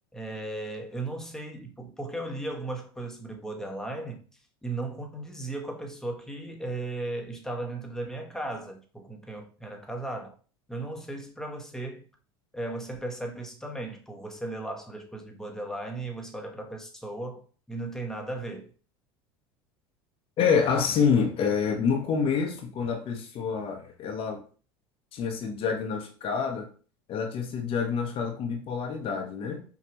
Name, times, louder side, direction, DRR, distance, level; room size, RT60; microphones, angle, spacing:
voice 1, 0.1-10.4 10.7-12.1 12.5-18.7, right 2 dB, 5° left, 1.0 m, -36 dB
voice 2, 20.4-24.4 25.1-26.7 27.1-29.6, left 6 dB, 45° left, 0.9 m, -27 dB
5.5 x 2.4 x 3.0 m
hypercardioid pair, 85°, 13 cm